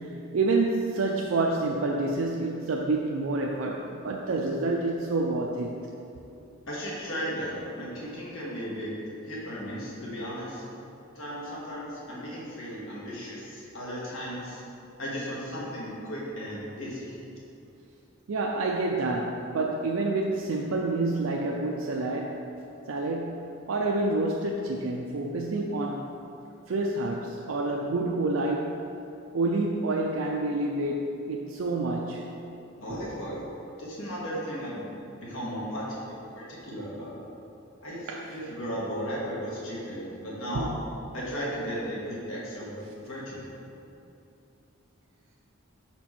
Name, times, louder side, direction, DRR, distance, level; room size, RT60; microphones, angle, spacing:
voice 1, 0.0-5.7 18.3-22.5 22.9-26.1 26.7-28.8 29.3-32.2 38.1-38.3 40.5-40.7, right 2 dB, 80° right, 0 dB, 0.4 m, -28 dB
voice 2, 6.7-10.6 11.1-14.6 15.0-17.2 32.8-33.4 33.8-34.9 35.2-37.1 37.8-40.7 41.1-43.5, equal, 85° left, -6 dB, 1.4 m, -35 dB
5.9 x 4.4 x 4.3 m, 2.7 s
head